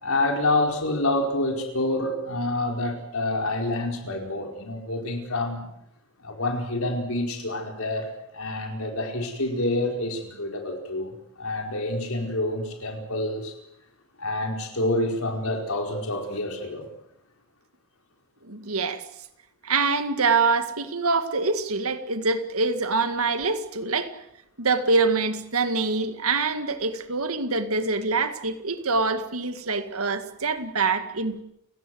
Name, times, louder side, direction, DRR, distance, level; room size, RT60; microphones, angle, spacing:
voice 1, 0.0-5.7 6.2-13.5 14.2-16.9, left 2 dB, 75° left, 3 dB, 4.8 m, -27 dB
voice 2, 18.4-19.0 19.6-24.1 24.6-31.4, right 4 dB, 80° right, 9 dB, 2.0 m, -25 dB
29.5 x 17.5 x 7.9 m, 0.82 s
head